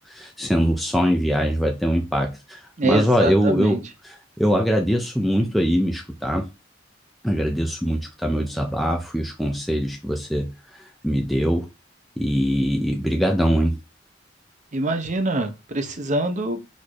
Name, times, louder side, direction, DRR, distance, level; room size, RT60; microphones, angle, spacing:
voice 1, 0.1-6.5 7.2-11.7 12.2-13.8, equal, ahead, 0.5 m, -22 dB
voice 2, 2.8-3.8 14.7-16.7, right 2 dB, 40° right, 0.8 m, -24 dB
4.3 x 2.7 x 4.6 m
head